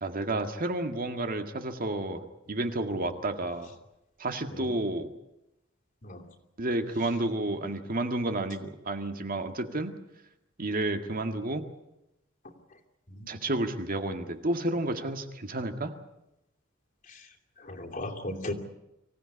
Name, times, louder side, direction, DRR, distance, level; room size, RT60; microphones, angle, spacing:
voice 1, 0.0-3.7 4.2-5.1 6.6-9.9 10.6-11.6 13.3-15.9, right 2 dB, 45° right, 6 dB, 1.9 m, -31 dB
voice 2, 17.6-18.5, left 1 dB, 45° left, 2 dB, 2.8 m, -37 dB
25.0 x 16.5 x 9.8 m, 0.87 s
head